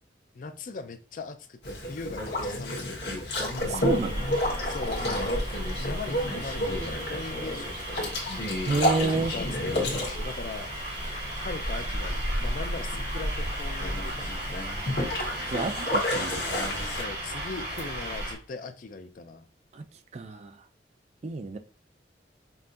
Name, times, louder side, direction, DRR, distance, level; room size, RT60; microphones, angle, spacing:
voice 1, 0.3-3.1 4.6-5.4 5.8-8.2 9.1-10.7 11.4-14.5 16.8-19.4, left 3 dB, 50° left, 0.4 m, -40 dB
Boat Water vehicle, 1.6-17.0, left 1 dB, 70° left, 1.3 m, -31 dB
sound 1, 3.3-18.3, equal, 70° right, 1.8 m, -34 dB
voice 2, 3.6-4.3 8.7-9.3 15.5-16.4 19.7-19.9 20.1-20.6 21.2-21.6, right 3 dB, 40° right, 0.4 m, -30 dB
5.4 x 2.7 x 2.5 m
head